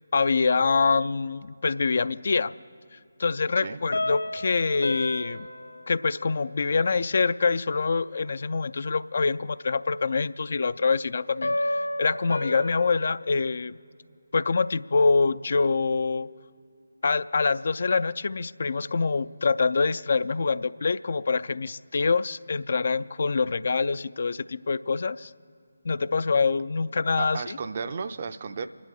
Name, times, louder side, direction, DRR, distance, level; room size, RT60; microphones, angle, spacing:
voice 1, 0.1-2.5 3.2-5.5 5.9-13.8 14.3-16.3 17.0-25.3 25.8-27.6, left 4 dB, 45° left, 16 dB, 0.3 m, -25 dB
sound 1, 3.9-6.5 11.4-13.0, left 1 dB, 80° left, 1.8 m, -31 dB
voice 2, 27.2-28.7, right 5 dB, 35° right, 10 dB, 0.5 m, -33 dB
29.0 x 11.0 x 3.7 m, 2.3 s
figure-of-eight pair, 150°, 0 cm